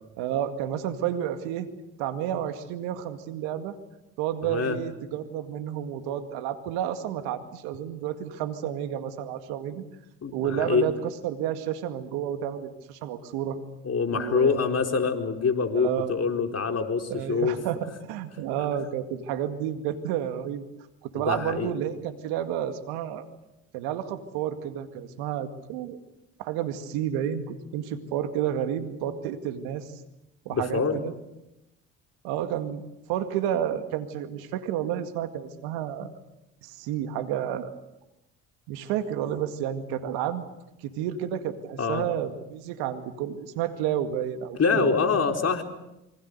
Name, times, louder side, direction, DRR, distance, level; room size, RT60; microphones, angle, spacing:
voice 1, 0.2-1.7 2.0-3.8 4.2-9.8 10.3-10.9 11.2-13.6 14.1-14.8 15.7-16.1 17.1-20.6 21.0-23.2 23.7-26.0 26.4-30.0 30.5-31.1 32.2-32.8 33.1-36.1 36.6-37.7 38.7-40.5 40.8-45.0, right 10 dB, 75° right, 9 dB, 2.2 m, -30 dB
voice 2, 4.4-4.8 10.2-10.9 13.8-17.6 21.2-21.7 30.5-31.0 41.8-42.0 44.6-45.6, left 5 dB, 40° left, 5 dB, 4.2 m, -25 dB
27.0 x 24.5 x 6.8 m, 0.92 s
hypercardioid pair, 55°, 38 cm